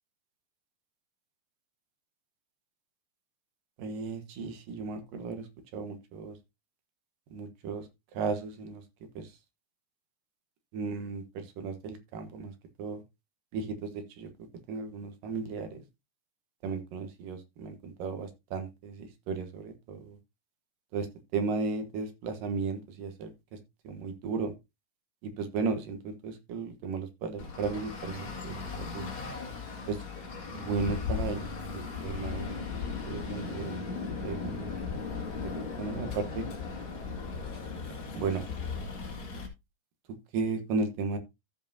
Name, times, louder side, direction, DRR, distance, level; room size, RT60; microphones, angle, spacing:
voice 1, 3.8-5.5 5.7-6.4 7.3-7.9 8.1-8.8 9.2-9.3 10.7-12.5 12.8-13.0 13.5-14.3 14.7-15.8 16.6-20.2 20.9-21.1 21.3-23.3 23.8-24.5 25.2-29.1 29.9-30.0 30.5-31.5 31.7-32.7 33.0-33.9 34.2-34.7 35.5-36.5 38.1-38.4 40.3-41.2, right 4 dB, 75° right, 7 dB, 3.0 m, -35 dB
Traffic noise roadway noise, 27.4-39.5, left 5 dB, 40° left, 2.7 m, -37 dB
13.5 x 7.3 x 2.7 m, 0.23 s
omnidirectional pair, 3.9 m